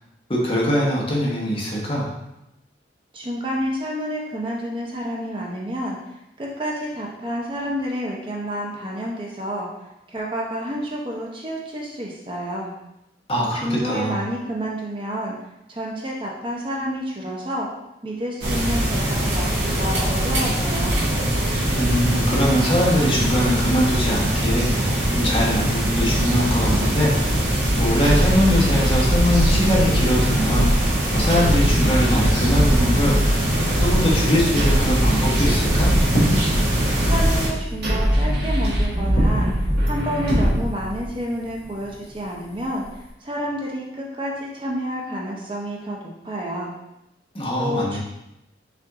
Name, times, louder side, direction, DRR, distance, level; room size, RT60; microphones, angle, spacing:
voice 1, 0.3-2.1 13.3-14.2 21.8-24.9 25.1-27.3 27.8-30.9 31.1-33.4 33.8-35.9 47.3-48.0, equal, 30° left, -4 dB, 1.0 m, -22 dB
voice 2, 3.1-6.0 6.4-9.7 10.1-12.7 13.6-15.3 15.7-17.7 18.0-21.0 37.0-39.5 39.8-42.8 43.2-46.0 46.2-46.7 47.6-48.0, equal, 30° right, -3 dB, 0.6 m, -29 dB
sound 1, 18.4-37.5, right 1 dB, 80° right, 1.7 m, -22 dB
sound 2, 28.0-41.1, equal, 55° right, 1.4 m, -22 dB
sound 3, 36.1-43.1, right 1 dB, 65° left, 1.7 m, -30 dB
5.7 x 2.5 x 3.6 m, 0.89 s
head